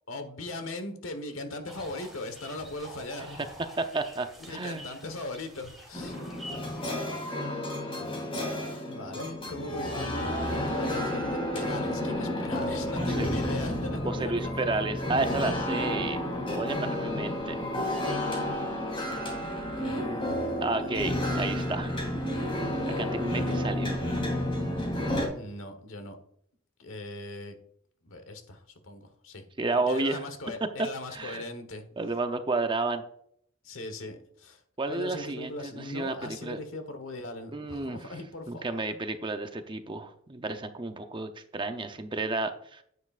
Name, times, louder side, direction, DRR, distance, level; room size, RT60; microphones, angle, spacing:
voice 1, 0.1-3.5 4.5-6.2 8.9-14.7 19.8-20.9 23.2-23.9 25.3-26.2 26.8-27.6 28.0-29.4 29.7-31.8 33.6-34.6 34.9-38.9, left 2 dB, 90° left, 7 dB, 1.3 m, -39 dB
sound 1, 1.7-6.9, equal, ahead, 2.9 m, -47 dB
voice 2, 3.8-4.9 13.2-13.3 14.1-16.2 16.5-17.6 20.6-21.9 23.0-24.0 29.6-30.2 31.1-31.5 32.0-33.0 34.8-36.6 37.5-38.0 38.5-42.8, right 3 dB, 25° right, 7 dB, 0.7 m, -31 dB
sound 2, 5.9-25.3, left 1 dB, 25° left, 2.6 m, -31 dB
9.7 x 9.5 x 2.5 m, 0.67 s
head